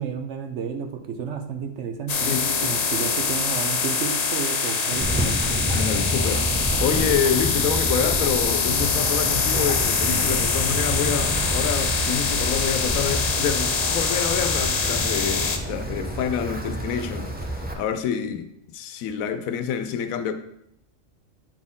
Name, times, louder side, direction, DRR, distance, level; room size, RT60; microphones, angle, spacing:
voice 1, 0.0-5.4, right 6 dB, 65° right, 1.0 m, -32 dB
sound 1, 2.1-15.6, left 5 dB, 55° left, 0.4 m, -24 dB
voice 2, 2.3-2.9 5.7-17.3 17.7-20.3, left 8 dB, 85° left, 1.0 m, -27 dB
sound 2, 4.7-10.5, right 2 dB, 45° right, 1.3 m, -37 dB
Wind, 5.0-17.7, right 1 dB, 15° right, 0.3 m, -29 dB
8.4 x 4.2 x 3.6 m
omnidirectional pair, 1.4 m